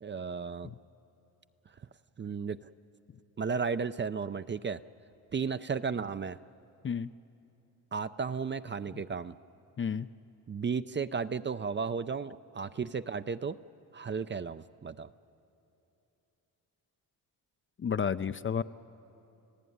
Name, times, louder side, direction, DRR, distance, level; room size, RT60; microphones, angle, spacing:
voice 1, 0.0-0.7 2.2-2.7 3.4-4.8 5.3-6.4 7.9-9.3 10.5-13.6 13.9-15.1, right 5 dB, 30° right, 12 dB, 0.5 m, -34 dB
voice 2, 17.8-18.6, left 7 dB, 30° left, 13 dB, 0.5 m, -31 dB
30.0 x 16.0 x 9.4 m, 2.8 s
cardioid pair, 70°, 40 cm